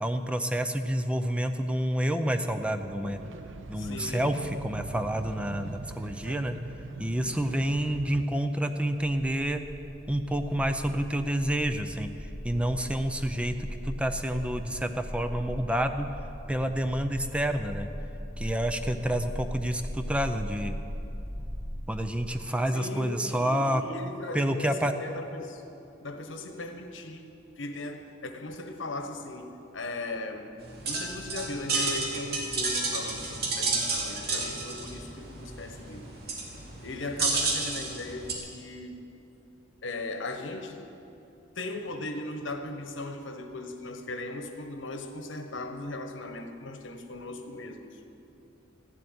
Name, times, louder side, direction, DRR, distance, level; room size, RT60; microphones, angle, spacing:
voice 1, 0.0-3.2 3.7-6.6 7.0-9.6 10.1-16.1 16.5-17.9 18.4-20.8 21.9-23.8 24.3-24.9, right 1 dB, 5° right, 7 dB, 0.5 m, -29 dB
sound 1, 2.4-8.3, right 3 dB, 80° right, 0.6 m, -42 dB
voice 2, 3.8-4.5 6.2-6.6 22.7-25.6 26.0-36.1 36.8-39.0 39.8-40.9 41.5-48.1, left 2 dB, 85° left, 7 dB, 1.1 m, -38 dB
sound 2, 9.2-22.1, equal, 25° right, 1.4 m, -39 dB
sound 3, 30.6-38.3, right 3 dB, 55° right, 2.4 m, -31 dB
14.0 x 7.8 x 9.4 m, 2.8 s
head